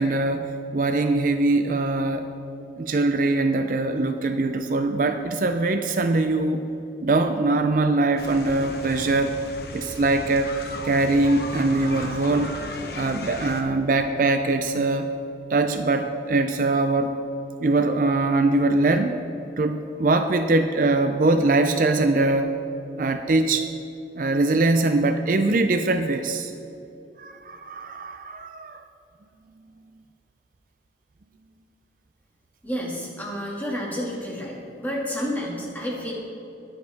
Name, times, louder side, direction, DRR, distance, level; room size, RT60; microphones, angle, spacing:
voice 1, 0.0-2.3 2.8-6.7 7.0-9.4 9.7-10.5 10.8-15.1 15.5-17.1 17.6-19.2 19.6-22.6 23.0-23.7 24.2-26.5 27.2-28.8, right 2 dB, 45° right, 7 dB, 0.5 m, -22 dB
sound 1, 8.2-13.6, left 2 dB, 55° left, 1.0 m, -36 dB
voice 2, 32.6-36.1, equal, 10° left, -4 dB, 2.1 m, -30 dB
20.5 x 7.9 x 3.5 m, 2.9 s
head